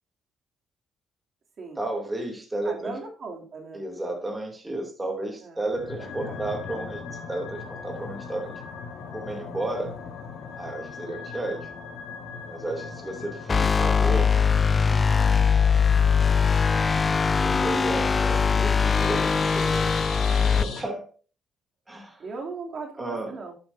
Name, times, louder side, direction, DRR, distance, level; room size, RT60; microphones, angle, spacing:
voice 1, 1.8-2.9 3.7-8.6 9.1-10.0 10.6-11.7 12.5-14.3 17.0-20.0 20.2-21.1 21.9-22.2 23.0-23.4, right 2 dB, 15° right, 1 dB, 2.8 m, -33 dB
voice 2, 2.6-3.8 5.4-5.6 6.0-6.4 22.2-23.5, right 4 dB, 50° right, 0 dB, 2.8 m, -38 dB
sound 1, 5.7-20.8, left 5 dB, 80° left, 2.7 m, -39 dB
sound 2, 13.5-20.6, left 6 dB, 35° left, 0.3 m, -21 dB
11.5 x 8.5 x 2.7 m, 0.38 s
cardioid pair, 80°, 0 cm